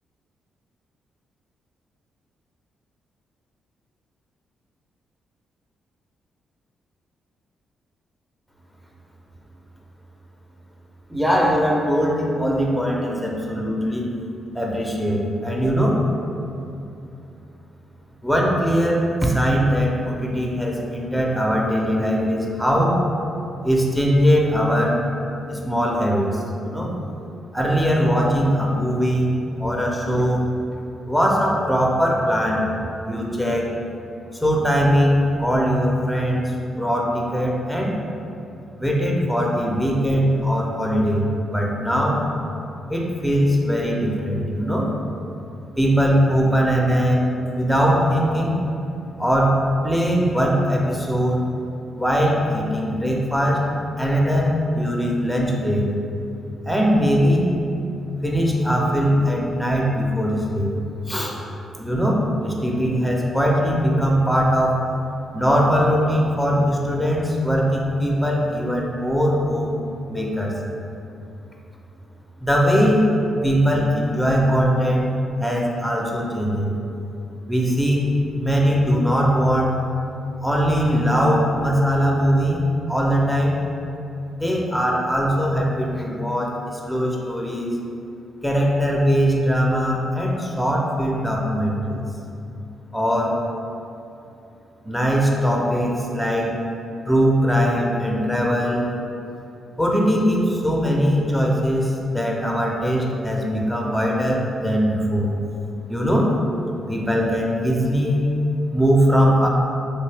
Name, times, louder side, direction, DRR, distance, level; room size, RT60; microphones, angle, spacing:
voice 1, 11.1-14.1 14.5-16.0 18.2-23.0 23.6-25.0 25.5-26.9 27.5-29.3 29.6-30.7 31.1-32.7 33.0-33.7 34.3-37.9 38.8-42.2 42.9-44.9 45.8-47.2 47.5-48.6 49.2-51.4 52.0-53.6 54.0-55.9 56.6-57.4 58.2-60.7 61.1-61.4 61.8-64.8 65.3-69.8 70.1-70.5 72.4-73.1 73.4-75.1 75.4-76.7 77.5-78.1 78.4-79.8 80.4-83.5 84.3-87.8 88.4-92.0 92.9-93.4 94.8-96.5 97.1-98.9 99.8-105.3 105.9-106.3 106.9-108.3 108.7-109.5, equal, ahead, -2 dB, 0.7 m, -20 dB
3.3 x 2.6 x 3.3 m, 2.7 s
hypercardioid pair, 45°, 0 cm